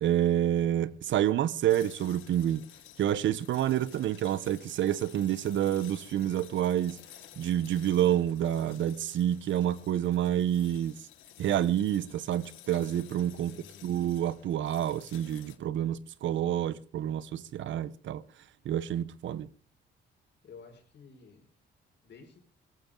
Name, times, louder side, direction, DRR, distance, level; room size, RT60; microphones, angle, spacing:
voice 1, 0.0-2.6 3.0-7.0 7.4-11.0 11.4-18.2 18.6-19.5, right 11 dB, 70° right, 0.9 m, -28 dB
sound 1, 1.7-15.6, left 13 dB, 85° left, 1.3 m, -53 dB
voice 2, 13.4-13.9 20.4-21.5 22.0-22.4, left 5 dB, 60° left, 5.3 m, -52 dB
18.0 x 14.5 x 3.8 m
cardioid pair, 90°, 20 cm